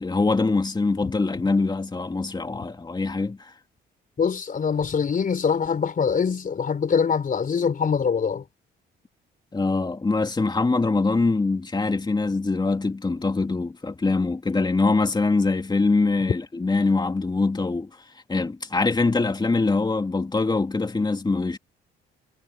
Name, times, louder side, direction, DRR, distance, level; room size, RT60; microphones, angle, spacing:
voice 1, 0.0-3.5 9.5-17.9 18.3-21.6, left 3 dB, 20° left, 2.8 m, -23 dB
voice 2, 4.2-8.4, left 6 dB, 45° left, 4.2 m, -23 dB
cardioid pair, 90°, 20 cm